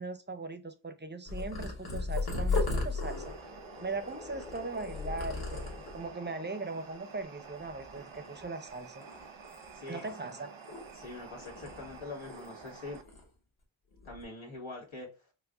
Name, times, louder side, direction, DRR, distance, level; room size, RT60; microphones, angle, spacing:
voice 1, 0.0-3.3 3.8-9.0 9.9-10.5, right 3 dB, 25° right, 0.5 m, -39 dB
Purr, 1.3-6.1 6.7-7.1 7.4-8.6 9.0-11.1 11.4-12.7 12.9-13.2 13.9-14.2, left 3 dB, 50° left, 1.3 m, -36 dB
sound 1, 2.9-6.9, left 4 dB, 10° left, 0.7 m, -50 dB
sound 2, 3.1-13.0, right 5 dB, 85° right, 0.7 m, -50 dB
voice 2, 9.7-10.1 10.4-10.5 10.9-13.0 14.0-15.1, left 2 dB, 80° left, 1.7 m, -44 dB
4.6 x 2.1 x 2.4 m
wide cardioid pair, 75°, 47 cm